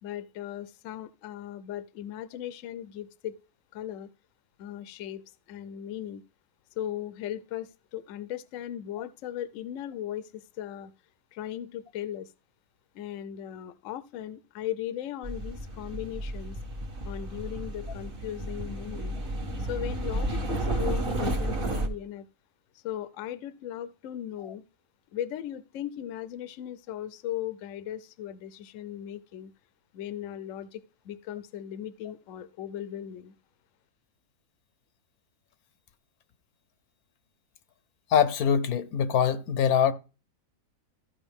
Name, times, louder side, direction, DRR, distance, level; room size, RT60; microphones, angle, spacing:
voice 1, 0.0-3.3 3.7-4.1 4.6-6.2 6.8-10.9 11.3-12.3 12.9-16.6 17.0-19.2 19.6-22.3 22.7-24.6 25.1-29.5 29.9-33.3, left 11 dB, 65° left, 0.9 m, -37 dB
sound 1, 15.2-21.9, right 1 dB, 40° right, 1.3 m, -32 dB
voice 2, 38.1-39.9, left 8 dB, 85° left, 1.2 m, -23 dB
14.5 x 5.3 x 3.5 m
omnidirectional pair, 1.6 m